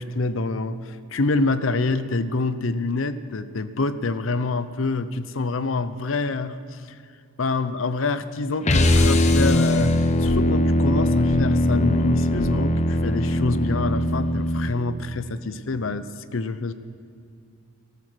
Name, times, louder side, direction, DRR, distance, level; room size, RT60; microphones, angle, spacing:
voice 1, 0.0-7.0 7.4-16.7, left 3 dB, 70° left, 13 dB, 0.7 m, -26 dB
sound 1, 8.6-14.8, left 1 dB, 35° left, 0.8 m, -20 dB
13.5 x 13.5 x 6.2 m, 2.4 s
head